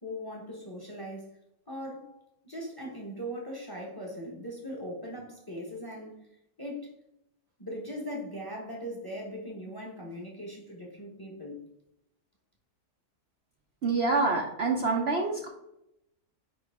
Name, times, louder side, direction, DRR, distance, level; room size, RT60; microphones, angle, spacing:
voice 1, 0.0-1.4 1.7-6.3 6.6-6.9 7.6-11.6, equal, 15° left, -1 dB, 1.2 m, -40 dB
voice 2, 13.8-15.5, right 3 dB, 50° right, 0 dB, 0.9 m, -26 dB
9.5 x 3.2 x 3.5 m, 0.81 s
omnidirectional pair, 1.6 m